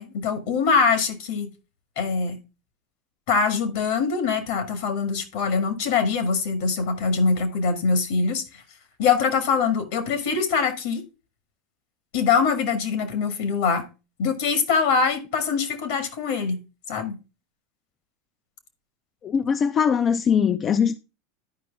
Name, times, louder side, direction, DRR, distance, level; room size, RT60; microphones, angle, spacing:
voice 1, 0.0-1.5 2.0-2.4 3.3-8.4 9.0-11.0 12.1-13.9 14.2-16.6 16.9-17.2, left 5 dB, 70° left, 1.8 m, -23 dB
voice 2, 19.2-21.0, left 7 dB, 35° left, 0.5 m, -21 dB
11.5 x 5.2 x 3.5 m
hypercardioid pair, 95°, 0 cm